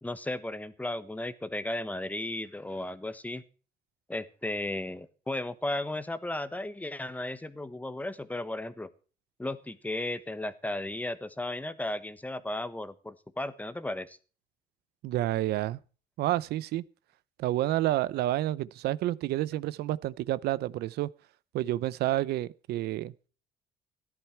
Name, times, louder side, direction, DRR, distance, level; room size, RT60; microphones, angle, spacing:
voice 1, 0.0-3.4 4.1-8.9 9.4-14.2, left 1 dB, 10° left, 1.1 m, -35 dB
voice 2, 15.0-15.8 16.2-16.8 17.4-21.1 21.5-23.1, right 15 dB, 75° right, 0.6 m, -29 dB
14.0 x 11.5 x 4.5 m
cardioid pair, 110°, 17 cm